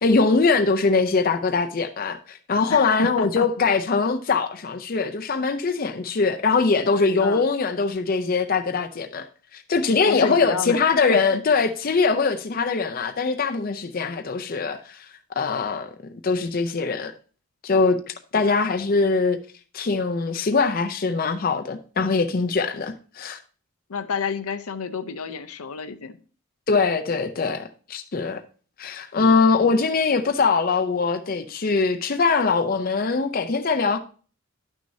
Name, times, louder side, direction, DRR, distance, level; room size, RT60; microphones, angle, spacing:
voice 1, 0.0-9.3 9.5-15.1 15.4-15.9 16.2-17.1 17.6-19.4 19.7-23.4 26.7-28.4 28.8-34.0, left 4 dB, 40° left, 0.5 m, -22 dB
voice 2, 2.7-3.5 7.2-7.4 10.1-10.8 11.1-11.4 18.3-18.6 23.9-26.2, left 5 dB, 80° left, 0.7 m, -30 dB
11.0 x 6.2 x 2.7 m
head